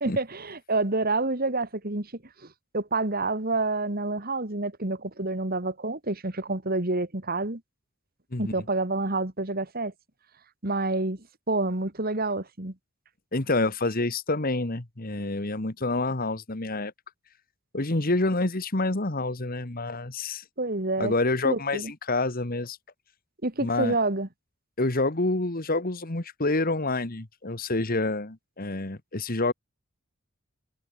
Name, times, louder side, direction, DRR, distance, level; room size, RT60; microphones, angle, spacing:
voice 1, 0.0-2.5 2.7-7.6 8.4-9.9 10.6-12.7 20.6-21.1 21.4-21.9 23.4-24.3, right 2 dB, 40° right, 2.2 m, -28 dB
voice 2, 13.3-16.9 17.7-20.4 21.0-22.8 23.6-24.0 24.8-29.5, left 2 dB, 40° left, 1.6 m, -27 dB
head